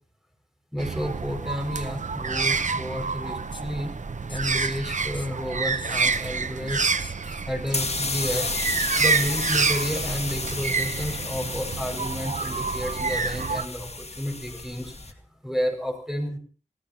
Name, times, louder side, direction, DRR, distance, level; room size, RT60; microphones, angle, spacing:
voice 1, 0.7-3.9 4.3-6.9 7.5-8.5 9.0-15.2 15.4-16.4, equal, 5° right, 5 dB, 5.7 m, -31 dB
sound 1, 0.8-13.7, right 4 dB, 80° right, 0.8 m, -28 dB
sound 2, 3.5-3.6 4.3-4.7 5.1-5.3 5.8-6.3 7.0-7.4 8.3-9.0, left 3 dB, 40° left, 1.4 m, -43 dB
sound 3, 7.7-15.1, left 3 dB, 60° left, 2.1 m, -32 dB
28.0 x 16.5 x 2.9 m, 0.38 s
wide cardioid pair, 65°, 13 cm